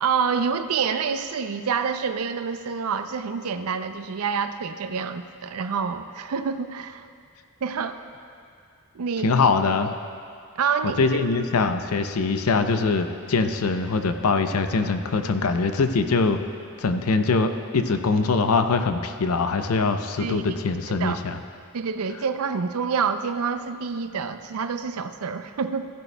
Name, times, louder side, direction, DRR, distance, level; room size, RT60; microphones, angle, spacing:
voice 1, 0.0-7.1 7.6-8.0 8.9-9.4 10.6-11.0 20.2-20.5 21.0-21.2 21.7-25.9, right 6 dB, 85° right, 9 dB, 0.5 m, -27 dB
voice 2, 9.2-9.9 10.8-16.4 16.8-21.4, left 4 dB, 80° left, 8 dB, 0.6 m, -23 dB
15.0 x 10.5 x 2.2 m, 2.3 s
head